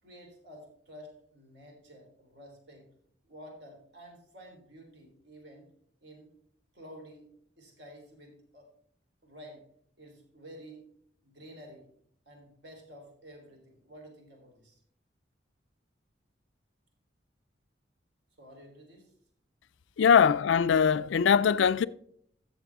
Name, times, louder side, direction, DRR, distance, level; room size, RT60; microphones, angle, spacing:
voice 1, 0.0-2.9 3.3-5.7 6.0-6.3 6.7-7.3 7.6-8.7 9.2-9.6 10.0-10.8 11.2-11.9 12.3-14.8 18.4-19.1 20.0-20.3, equal, 65° right, 3.6 m, -51 dB
voice 2, 20.0-21.9, left 7 dB, 80° left, 0.4 m, -22 dB
13.0 x 7.3 x 3.5 m
head